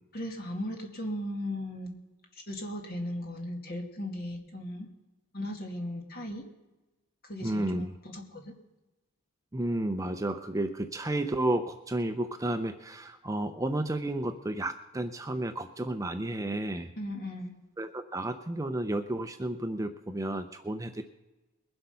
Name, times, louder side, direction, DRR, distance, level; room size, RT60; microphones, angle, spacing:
voice 1, 0.1-1.9 2.3-4.9 5.3-6.5 7.2-8.5 17.0-17.5, left 1 dB, 45° left, 3 dB, 2.2 m, -37 dB
voice 2, 7.4-7.9 9.5-16.9 17.8-21.0, right 1 dB, 15° right, 8 dB, 0.5 m, -32 dB
21.5 x 7.8 x 5.6 m, 1.1 s
head